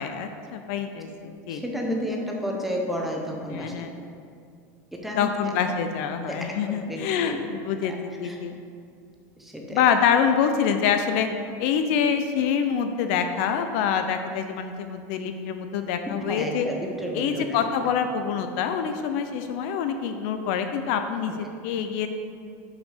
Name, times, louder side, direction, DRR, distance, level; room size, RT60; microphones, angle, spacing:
voice 1, 0.0-1.6 3.5-3.9 5.2-8.5 9.7-11.3 11.6-16.7 17.1-22.1, left 7 dB, 50° left, 7 dB, 0.4 m, -26 dB
voice 2, 1.5-3.9 5.0-5.5 6.3-6.4 6.7-7.4 7.8-8.4 9.4-9.9 16.1-17.9 21.3-21.4, equal, ahead, 0 dB, 0.6 m, -32 dB
5.8 x 5.3 x 5.6 m, 2.3 s
supercardioid pair, 175°, 9 cm